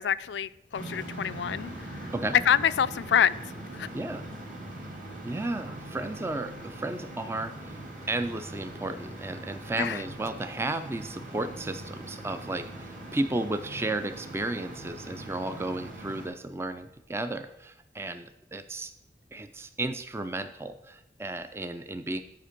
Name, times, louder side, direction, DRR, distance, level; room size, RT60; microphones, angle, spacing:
voice 1, 0.0-1.7 2.0-2.1 2.4-3.4 3.7-3.9 9.8-10.0, left 8 dB, 85° left, 16 dB, 0.4 m, -26 dB
sound 1, 0.7-16.3, right 1 dB, 50° right, 2.2 m, -41 dB
voice 2, 3.9-4.3 5.2-7.8 8.1-18.9 19.3-22.2, right 2 dB, 15° right, 9 dB, 0.4 m, -33 dB
10.0 x 5.1 x 6.5 m, 0.85 s
head